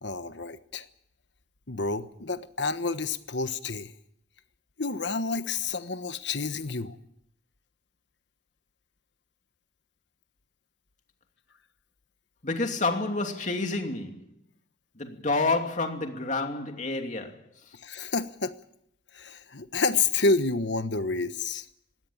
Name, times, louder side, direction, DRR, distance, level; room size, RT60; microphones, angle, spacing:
voice 1, 0.0-0.9 1.7-3.9 4.8-7.0 17.7-18.5 19.1-21.7, left 4 dB, 65° left, 1.3 m, -29 dB
voice 2, 12.4-14.3 15.0-17.4, left 3 dB, 40° left, 2.8 m, -29 dB
20.5 x 17.5 x 8.8 m
head